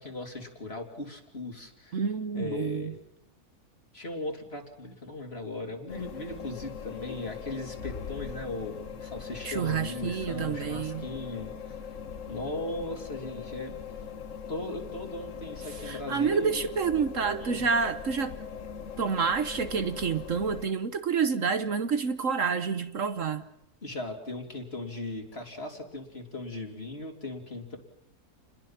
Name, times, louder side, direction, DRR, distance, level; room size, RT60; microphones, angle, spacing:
voice 1, 0.0-2.0 2.3-2.9 3.9-11.8 12.3-13.7 14.5-16.7 17.4-17.7 23.8-27.8, left 2 dB, 40° left, 3.6 m, -38 dB
voice 2, 1.9-2.9 9.4-11.1 15.8-18.4 19.0-23.4, right 5 dB, 60° right, 1.4 m, -28 dB
sound 1, 5.9-20.7, left 6 dB, 55° left, 1.5 m, -41 dB
29.5 x 21.5 x 5.9 m
omnidirectional pair, 1.6 m